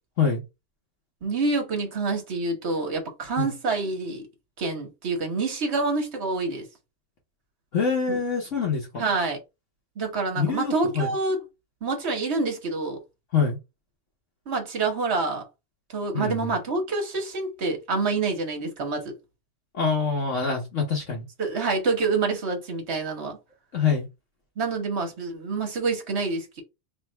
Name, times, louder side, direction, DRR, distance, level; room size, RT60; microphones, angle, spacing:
voice 1, 1.2-4.3 4.6-6.7 8.1-8.2 9.0-9.4 10.0-11.4 11.8-13.0 14.5-15.4 15.9-19.1 21.4-23.4 24.6-26.6, right 3 dB, 45° right, 1.4 m, -27 dB
voice 2, 7.7-8.9 10.4-11.1 13.3-13.6 16.1-16.5 19.7-21.2 23.7-24.1, left 5 dB, 55° left, 1.2 m, -25 dB
3.5 x 2.5 x 4.4 m
omnidirectional pair, 1.7 m